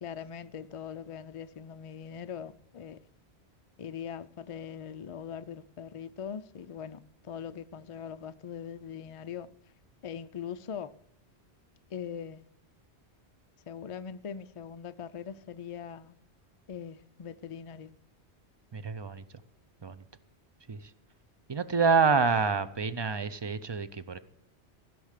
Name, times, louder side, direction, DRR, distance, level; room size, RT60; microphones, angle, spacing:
voice 1, 0.0-3.0 3.8-9.5 10.0-10.9 11.9-12.4 13.7-16.1 16.7-17.9, left 7 dB, 55° left, 0.3 m, -41 dB
voice 2, 18.7-19.2 19.8-20.0 20.7-20.9 21.5-24.2, right 5 dB, 35° right, 0.4 m, -27 dB
15.0 x 6.1 x 6.5 m
omnidirectional pair, 1.1 m